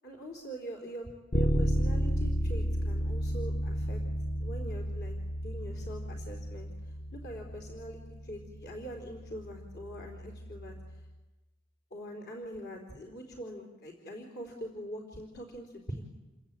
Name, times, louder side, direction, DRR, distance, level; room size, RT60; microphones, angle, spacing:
voice 1, 0.0-4.0 4.4-5.2 5.4-6.7 7.1-10.7 11.9-16.0, equal, 55° left, 3 dB, 4.0 m, -43 dB
Bass guitar, 1.3-11.1, equal, 35° left, 1.0 m, -33 dB
29.0 x 23.0 x 8.9 m, 1.1 s
head